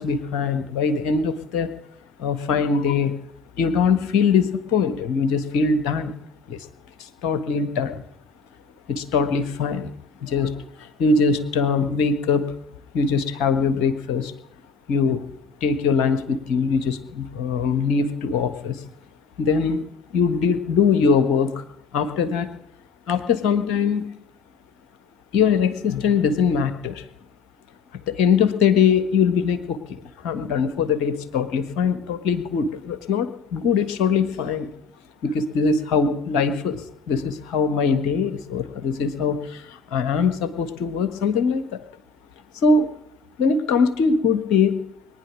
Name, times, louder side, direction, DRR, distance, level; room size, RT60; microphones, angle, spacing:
voice 1, 0.0-1.7 2.2-3.1 3.6-6.1 6.5-6.7 7.0-8.0 8.9-9.9 10.2-12.4 12.9-14.3 14.9-15.3 15.6-18.8 19.4-19.8 20.1-21.6 21.9-22.5 23.1-24.1 25.3-27.0 28.1-34.7 35.2-36.8 37.1-41.8 42.6-42.9 43.4-44.8, left 5 dB, 65° left, 11 dB, 1.4 m, -22 dB
22.0 x 9.9 x 6.3 m, 0.72 s
figure-of-eight pair, 45°, 0 cm